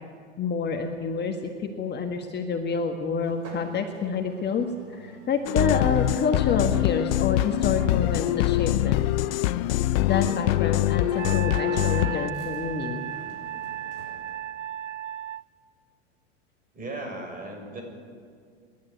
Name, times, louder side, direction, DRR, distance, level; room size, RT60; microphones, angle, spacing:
voice 1, 0.4-9.1 9.8-13.1, left 5 dB, 30° left, 4 dB, 1.6 m, -28 dB
sound 1, 3.2-14.5, right 2 dB, 40° right, 6.9 m, -51 dB
sound 2, 5.5-12.3, left 15 dB, 55° left, 0.7 m, -24 dB
Wind instrument woodwind instrument, 11.2-15.4, right 11 dB, 90° right, 0.6 m, -35 dB
voice 2, 16.7-17.8, right 2 dB, 25° right, 2 dB, 6.5 m, -36 dB
27.5 x 12.0 x 9.4 m, 2.1 s
hypercardioid pair, 95°, 36 cm